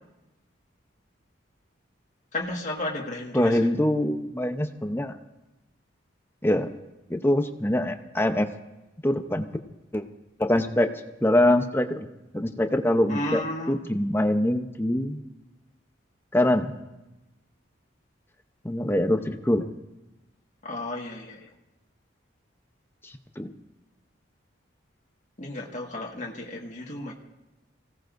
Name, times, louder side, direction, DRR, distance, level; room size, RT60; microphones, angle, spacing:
voice 1, 2.3-3.6 13.1-13.8 20.6-21.5 25.4-27.1, left 1 dB, 40° left, -2 dB, 1.7 m, -33 dB
voice 2, 3.3-5.2 6.4-6.7 7.1-8.5 9.0-9.5 9.9-10.0 10.4-10.9 11.2-12.1 12.3-13.4 13.7-15.2 16.3-16.7 18.6-19.7 23.0-23.5, left 1 dB, 10° left, 7 dB, 0.7 m, -24 dB
24.5 x 17.0 x 2.6 m, 0.99 s
head